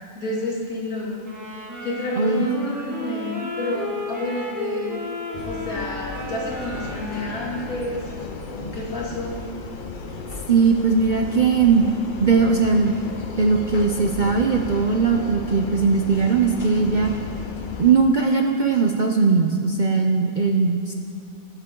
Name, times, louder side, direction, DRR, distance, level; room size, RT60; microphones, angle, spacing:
voice 1, 0.1-1.2 1.8-4.9 5.4-9.4, left 1 dB, 80° left, -4 dB, 3.0 m, -29 dB
sound 1, 1.2-7.8, left 2 dB, 10° right, 1.8 m, -33 dB
voice 2, 2.2-2.5 10.5-11.8 12.2-12.9 13.4-17.1 17.8-20.9, right 5 dB, 50° right, 2 dB, 0.6 m, -19 dB
sound 2, 5.3-17.9, left 4 dB, 45° left, 0.8 m, -35 dB
20.5 x 8.2 x 3.8 m, 2.5 s
omnidirectional pair, 1.5 m